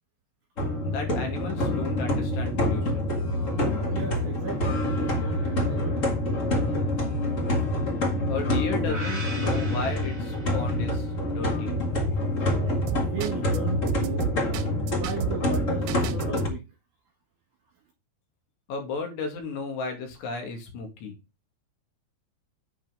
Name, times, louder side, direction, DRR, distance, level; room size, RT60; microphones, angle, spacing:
sound 1, 0.6-16.5, left 1 dB, 60° left, 0.8 m, -26 dB
voice 1, 0.8-3.1 8.3-11.8 18.7-21.2, left 4 dB, 85° left, 3 dB, 4.4 m, -34 dB
voice 2, 3.9-6.1 12.9-14.3 15.0-16.6, right 8 dB, 60° right, 0 dB, 2.9 m, -36 dB
sound 2, 8.8-11.1, right 1 dB, 10° right, 1.7 m, -39 dB
sound 3, 12.9-13.6 13.9-16.4, right 11 dB, 75° right, 2.5 m, -31 dB
8.8 x 5.6 x 3.9 m, 0.26 s
omnidirectional pair, 4.8 m